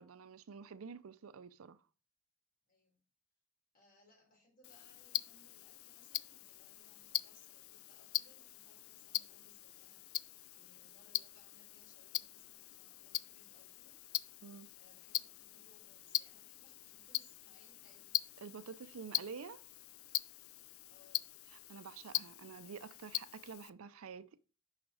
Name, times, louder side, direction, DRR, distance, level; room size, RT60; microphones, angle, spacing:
voice 1, 0.0-1.8 14.4-14.7 18.4-19.6 21.7-24.4, right 6 dB, 85° right, 0.5 m, -49 dB
voice 2, 2.6-3.0 3.7-14.0 14.8-18.2 20.9-21.3, left 2 dB, 40° left, 3.7 m, -68 dB
Tick-tock, 4.6-23.7, left 16 dB, 80° left, 0.4 m, -42 dB
6.3 x 5.8 x 4.7 m
head